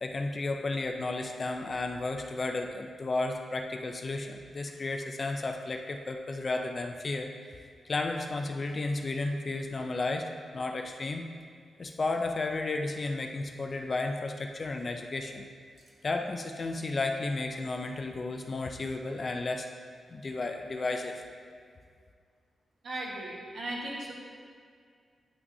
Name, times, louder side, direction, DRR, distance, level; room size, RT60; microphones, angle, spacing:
voice 1, 0.0-7.3 7.8-11.2 11.8-15.5 16.0-19.7 20.1-21.2, left 2 dB, 30° left, 4 dB, 0.4 m, -33 dB
voice 2, 22.8-24.1, right 1 dB, 50° right, -3 dB, 1.3 m, -37 dB
9.4 x 6.0 x 2.7 m, 2.1 s
wide cardioid pair, 175°, 0 cm